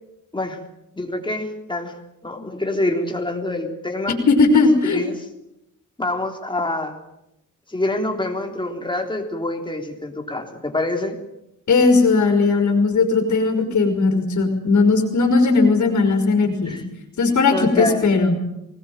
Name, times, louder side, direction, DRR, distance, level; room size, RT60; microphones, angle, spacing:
voice 1, 0.9-1.9 2.2-4.1 4.8-5.3 6.0-6.9 7.7-11.2 16.7-16.8 17.5-18.1, left 2 dB, 15° left, 3 dB, 3.7 m, -26 dB
voice 2, 4.3-5.1 11.7-16.8 17.2-18.3, left 4 dB, 60° left, 3 dB, 4.9 m, -17 dB
24.0 x 20.0 x 9.3 m, 0.86 s
wide cardioid pair, 145°, 31 cm